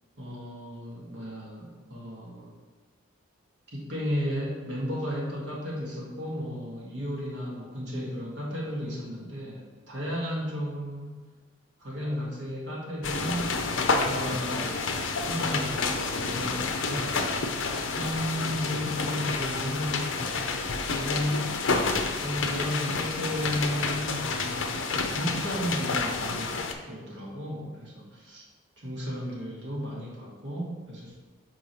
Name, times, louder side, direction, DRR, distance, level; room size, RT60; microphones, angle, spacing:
voice 1, 0.2-2.5 3.7-11.2 11.8-17.2 17.9-21.5 22.2-28.4 28.8-31.2, equal, 65° right, -4 dB, 1.6 m, -34 dB
sound 1, 13.0-26.7, left 4 dB, 80° left, 0.6 m, -29 dB
6.0 x 3.1 x 5.3 m, 1.3 s
head